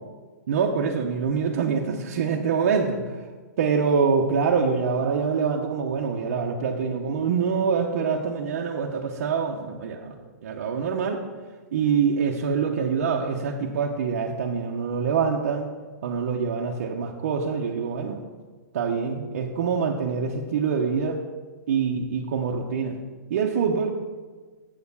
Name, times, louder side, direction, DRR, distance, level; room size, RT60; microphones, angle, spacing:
voice 1, 0.5-3.0 3.6-10.1 10.4-11.2 11.7-15.7 16.0-18.2 18.7-21.2 21.7-23.0 23.3-23.9, right 6 dB, 45° right, -1 dB, 0.7 m, -25 dB
7.8 x 4.3 x 6.9 m, 1.4 s
hypercardioid pair, 175°, 9 cm